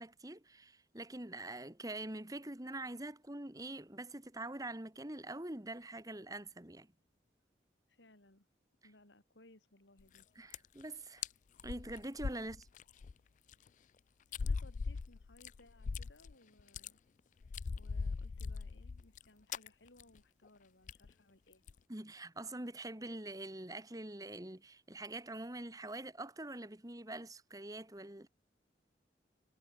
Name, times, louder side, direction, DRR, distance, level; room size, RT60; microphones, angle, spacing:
voice 1, 0.0-6.9 10.4-11.2 11.6-12.7 21.9-28.3, right 2 dB, 20° right, 1.8 m, -45 dB
voice 2, 7.9-8.5 8.8-10.3 14.4-17.0 17.7-21.6, left 1 dB, 85° left, 4.8 m, -63 dB
sound 1, 10.0-10.2 10.5-10.8 11.2-11.3 11.6-13.1 13.5-13.6 14.3-16.3 16.6-16.9 17.4-19.2 19.5-19.7 20.0-20.2 20.5-20.6 20.9-21.1 21.5-21.8, left 4 dB, 45° left, 0.3 m, -40 dB
head